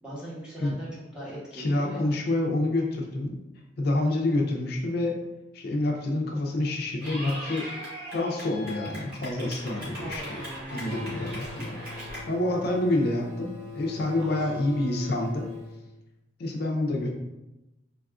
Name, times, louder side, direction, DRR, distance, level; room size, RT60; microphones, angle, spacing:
voice 1, 0.0-2.1 10.0-11.2 14.1-14.5, right 1 dB, 5° right, -8 dB, 0.9 m, -40 dB
voice 2, 1.5-3.4 3.8-5.2 5.5-7.7 8.1-10.4 10.7-11.8 12.0-15.5 16.4-17.1, left 2 dB, 55° left, 1 dB, 0.4 m, -27 dB
Clapping / Cheering, 7.0-12.2, equal, 50° right, 1.0 m, -39 dB
sound 1, 10.8-15.7, left 3 dB, 80° right, 0.8 m, -40 dB
3.4 x 2.3 x 2.4 m, 0.97 s
head